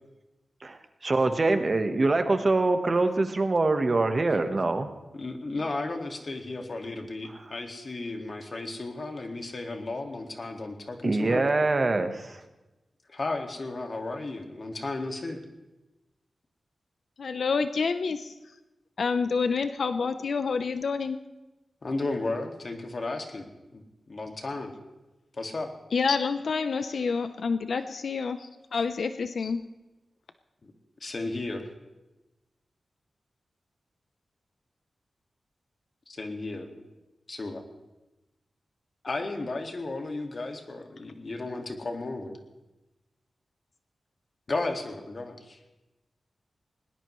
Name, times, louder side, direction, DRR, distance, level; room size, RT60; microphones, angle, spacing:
voice 1, 0.6-4.9 11.0-12.4, right 3 dB, 40° right, 8 dB, 1.2 m, -24 dB
voice 2, 5.1-11.5 13.1-15.4 21.8-23.8 24.1-24.7 25.3-25.7 30.6-30.7 31.0-31.7 36.1-36.7 37.3-37.6 39.0-42.4 44.5-45.6, left 2 dB, 45° left, 4 dB, 2.0 m, -34 dB
voice 3, 17.2-18.3 19.0-21.2 25.9-29.6, left 5 dB, 75° left, 10 dB, 0.7 m, -28 dB
20.5 x 18.5 x 3.2 m, 1.0 s
wide cardioid pair, 105°, 0 cm